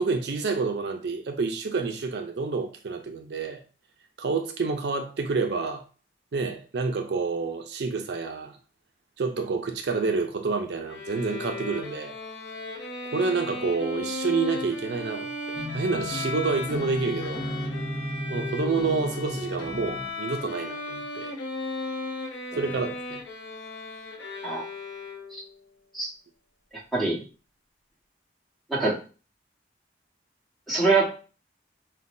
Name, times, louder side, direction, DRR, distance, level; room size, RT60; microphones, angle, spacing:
voice 1, 0.0-3.6 4.2-5.8 6.3-8.6 9.2-12.2 13.1-17.4 18.3-21.3 22.6-23.2, right 4 dB, 65° right, 0.4 m, -28 dB
Bowed string instrument, 10.9-25.5, left 2 dB, 90° left, 0.8 m, -36 dB
lofi guitar, 15.5-20.1, left 1 dB, 30° left, 0.7 m, -34 dB
voice 2, 30.7-31.1, right 3 dB, ahead, 1.2 m, -23 dB
5.5 x 2.1 x 2.5 m
head